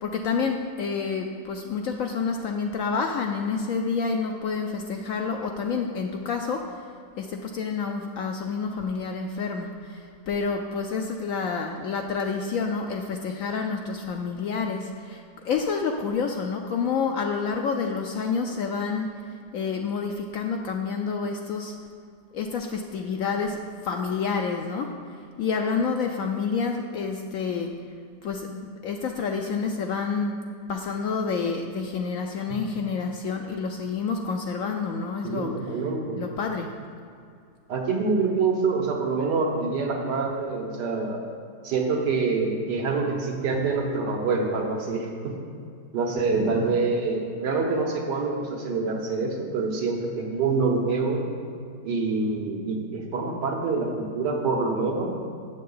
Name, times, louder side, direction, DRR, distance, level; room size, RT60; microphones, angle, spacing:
voice 1, 0.0-6.8 7.2-19.1 19.5-21.7 22.3-24.9 25.4-27.7 28.2-30.4 30.7-35.7 36.2-36.7, left 5 dB, 70° left, 3 dB, 0.8 m, -28 dB
voice 2, 35.2-36.2 37.7-41.2 41.6-45.4 45.9-51.2 51.8-55.2, right 4 dB, 80° right, 1 dB, 1.7 m, -26 dB
7.6 x 6.6 x 5.5 m, 2.4 s
omnidirectional pair, 1.8 m